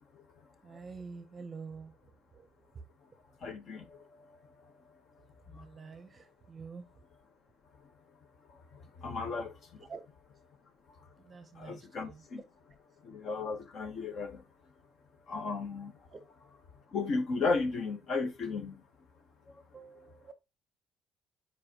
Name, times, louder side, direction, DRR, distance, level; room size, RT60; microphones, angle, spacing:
voice 1, 0.6-1.9 5.5-6.1 6.5-6.8 9.9-10.0 11.3-11.8 19.7-20.3, right 5 dB, 25° right, 0.7 m, -46 dB
voice 2, 3.4-3.8 9.0-9.5 11.6-12.4 13.1-14.3 15.3-15.9 16.9-18.7, left 4 dB, 50° left, 1.0 m, -34 dB
7.7 x 4.8 x 2.9 m
cardioid pair, 155°, 0 cm